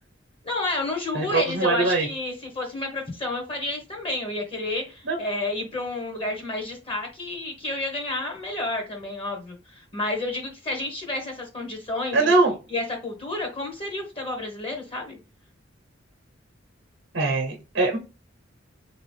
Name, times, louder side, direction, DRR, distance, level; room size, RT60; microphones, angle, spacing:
voice 1, 0.4-12.3 12.7-15.2, left 2 dB, 30° left, 1.1 m, -30 dB
voice 2, 1.1-2.1 5.0-5.2 12.1-12.5 17.1-18.0, right 3 dB, 60° right, 0.9 m, -22 dB
3.6 x 3.0 x 3.3 m
head